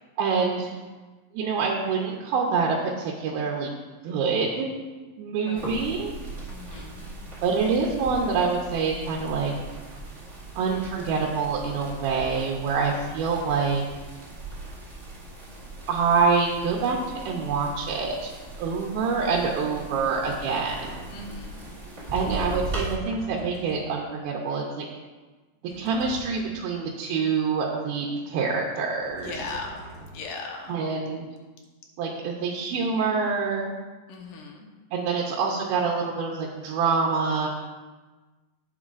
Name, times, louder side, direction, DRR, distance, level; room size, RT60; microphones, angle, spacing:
voice 1, 0.2-0.8 1.3-3.7 4.0-4.7 5.2-6.2 6.7-6.8 7.2-9.5 10.6-13.8 15.9-17.0 17.2-18.3 18.6-21.1 22.1-24.9 25.8-29.4 30.7-31.3 32.0-33.7 34.9-37.5, right 5 dB, 85° right, -1 dB, 2.7 m, -26 dB
voice 2, 5.4-5.8 6.5-7.1 19.8-20.3 21.1-21.6 22.0-22.5 29.2-29.8 30.1-30.8 32.5-32.6 34.1-34.7, left 4 dB, 70° left, 1 dB, 2.5 m, -39 dB
sound 1, 5.6-22.9, right 2 dB, 25° right, 3.0 m, -39 dB
sound 2, 20.7-21.4 22.6-24.0 25.7-26.7 29.0-30.4, right 2 dB, 50° right, 2.9 m, -45 dB
11.0 x 8.8 x 2.5 m, 1.3 s
omnidirectional pair, 4.2 m